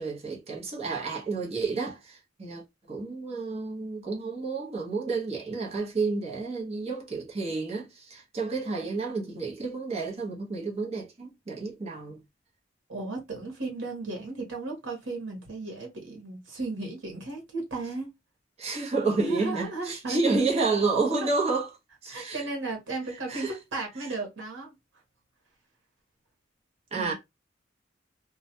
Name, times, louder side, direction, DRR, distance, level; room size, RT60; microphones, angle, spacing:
voice 1, 0.0-12.2 18.6-21.7 22.0-22.4 23.1-23.5 24.0-24.1 26.9-27.1, right 3 dB, 35° right, 0.8 m, -30 dB
voice 2, 12.9-18.1 19.2-20.2 21.2-21.3 22.1-24.7 27.0-27.1, right 3 dB, 85° right, 1.0 m, -35 dB
2.3 x 2.1 x 2.7 m
head